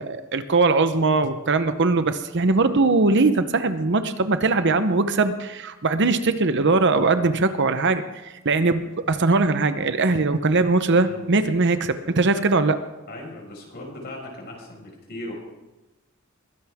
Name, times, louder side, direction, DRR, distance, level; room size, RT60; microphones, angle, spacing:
voice 1, 0.0-8.0 8.4-12.8, right 3 dB, 55° right, 10 dB, 0.9 m, -20 dB
voice 2, 13.1-15.3, left 1 dB, 50° left, 0 dB, 5.6 m, -38 dB
22.0 x 16.5 x 3.6 m, 1.1 s
head